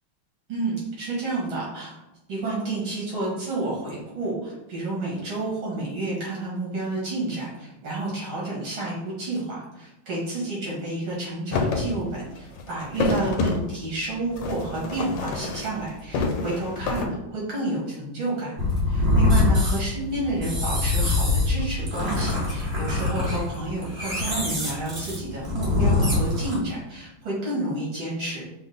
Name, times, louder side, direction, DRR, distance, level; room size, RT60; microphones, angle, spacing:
voice 1, 0.5-2.0 2.3-18.5 18.9-28.5, right 2 dB, 70° right, -5 dB, 2.5 m, -30 dB
sound 1, 11.5-11.9 12.3-13.6 14.3-17.1, left 4 dB, 75° left, 1.2 m, -27 dB
sound 2, 18.6-26.6, left 2 dB, 35° right, 1.2 m, -24 dB
5.1 x 2.0 x 3.9 m, 0.94 s
omnidirectional pair, 2.3 m